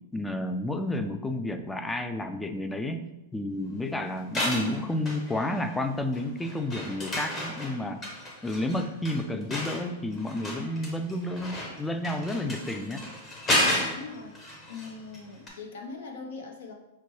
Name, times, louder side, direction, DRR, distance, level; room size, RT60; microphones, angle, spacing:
voice 1, 0.1-3.0 3.3-8.0 8.4-13.0, left 1 dB, 10° left, 8 dB, 0.3 m, -31 dB
sound 1, 4.2-5.8 6.1-15.2 15.5-15.6, left 1 dB, 25° left, 0.9 m, -32 dB
voice 2, 13.9-14.4 14.7-16.7, left 4 dB, 75° left, 2 dB, 0.7 m, -41 dB
5.7 x 2.1 x 3.1 m, 0.96 s
hypercardioid pair, 130°, 0 cm